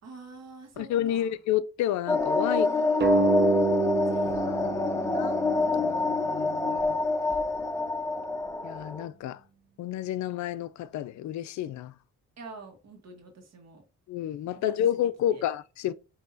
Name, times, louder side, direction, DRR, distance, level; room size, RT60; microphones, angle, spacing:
voice 1, 0.0-1.3 2.5-3.7 4.1-6.1 12.4-13.8 14.5-14.7 15.3-15.4, right 3 dB, 60° right, 1.4 m, -48 dB
voice 2, 0.8-2.9 5.1-5.4 5.7-7.0 8.6-9.4 9.8-11.9 14.1-15.9, left 11 dB, 70° left, 0.4 m, -30 dB
sound 1, 2.1-9.1, left 3 dB, 10° left, 0.7 m, -26 dB
sound 2, 3.0-6.2, right 4 dB, 35° right, 0.8 m, -28 dB
5.8 x 2.8 x 2.6 m
cardioid pair, 90°, 30 cm